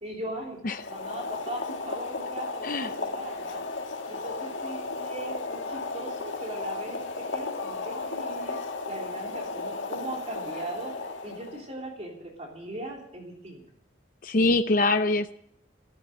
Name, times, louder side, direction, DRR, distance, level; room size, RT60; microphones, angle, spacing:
voice 1, 0.0-0.6 0.9-3.6 4.1-8.6 8.9-11.0 11.2-13.6, right 1 dB, 35° right, -1 dB, 3.4 m, -39 dB
Boiling, 0.7-11.7, left 3 dB, 70° left, 2.0 m, -34 dB
voice 2, 2.6-2.9 14.2-15.3, left 2 dB, 45° left, 8 dB, 0.7 m, -24 dB
14.0 x 13.5 x 7.7 m, 0.69 s
head